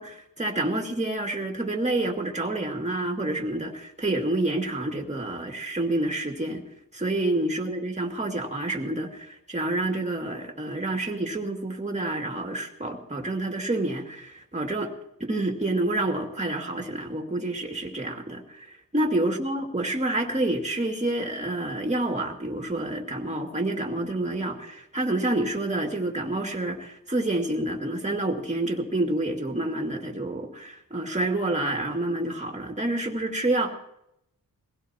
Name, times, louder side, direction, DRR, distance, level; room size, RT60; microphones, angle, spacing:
voice 1, 0.0-6.6 6.9-14.9 15.2-33.7, right 2 dB, 20° right, 2 dB, 2.3 m, -28 dB
22.0 x 16.5 x 2.9 m, 0.79 s
wide cardioid pair, 95°, 34 cm